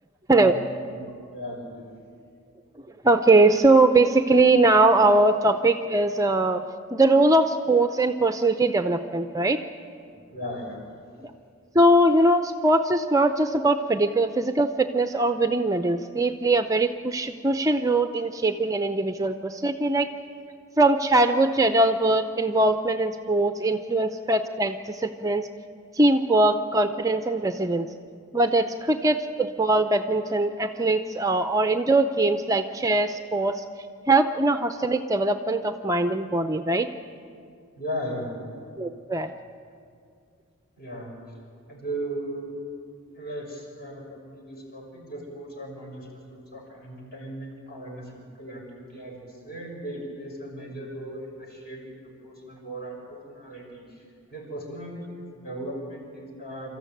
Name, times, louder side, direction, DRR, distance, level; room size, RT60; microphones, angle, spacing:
voice 1, 0.8-1.9 10.0-10.8 37.8-38.4 40.8-41.1 41.7-42.5 43.1-54.0 54.3-56.8, right 1 dB, 45° left, -1 dB, 6.4 m, -37 dB
voice 2, 3.0-6.6 6.9-9.6 11.7-20.1 20.8-25.5 26.0-27.9 28.3-33.6 34.1-36.9 38.8-39.3, right 2 dB, 15° right, 8 dB, 0.5 m, -21 dB
26.5 x 14.0 x 9.1 m, 2.3 s
head